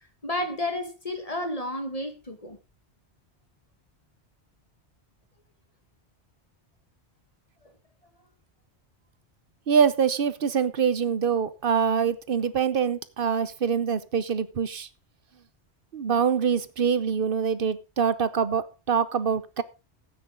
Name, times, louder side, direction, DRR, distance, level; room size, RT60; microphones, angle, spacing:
voice 1, 0.2-2.6, left 1 dB, 35° left, 2.0 m, -31 dB
voice 2, 9.7-14.9 15.9-19.6, right 7 dB, 55° right, 1.0 m, -24 dB
13.0 x 9.4 x 3.7 m
omnidirectional pair, 1.1 m